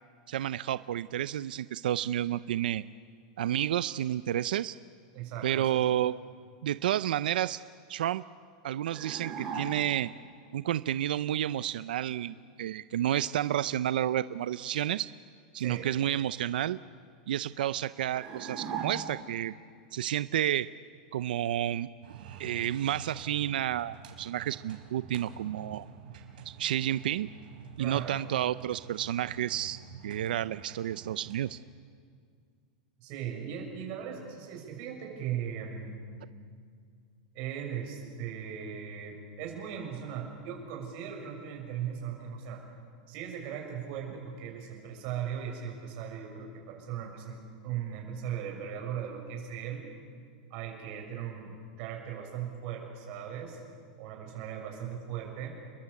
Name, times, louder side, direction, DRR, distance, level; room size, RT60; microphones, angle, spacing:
voice 1, 0.3-2.8 3.4-4.8 5.4-6.1 6.6-7.6 7.9-8.2 8.6-10.1 10.5-15.1 15.5-16.8 17.3-19.5 19.9-20.7 21.1-21.9 22.4-25.8 26.5-27.3 27.8-29.8 30.0-31.6, right 11 dB, 90° right, 14 dB, 0.6 m, -30 dB
voice 2, 5.1-5.7 15.6-15.9 27.8-28.2 33.0-35.9 37.3-42.6 43.1-49.8 50.5-53.6 54.0-55.6, right 8 dB, 35° right, 1 dB, 6.7 m, -38 dB
sound 1, 8.9-10.1 18.2-19.5, right 5 dB, 15° right, 6.6 m, -38 dB
sound 2, 22.0-31.5, right 6 dB, 70° right, 4.6 m, -48 dB
29.5 x 22.0 x 8.4 m, 2.1 s
supercardioid pair, 180°, 5 cm